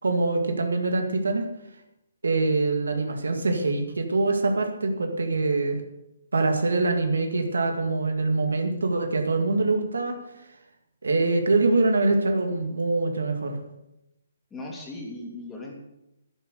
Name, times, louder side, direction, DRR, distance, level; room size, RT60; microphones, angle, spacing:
voice 1, 0.0-1.5 2.2-5.8 6.3-10.2 11.0-13.6, right 3 dB, 85° right, 4 dB, 2.2 m, -24 dB
voice 2, 14.5-15.8, left 2 dB, 10° left, -1 dB, 3.0 m, -38 dB
10.5 x 10.0 x 6.7 m, 0.89 s
hypercardioid pair, 150°, 0 cm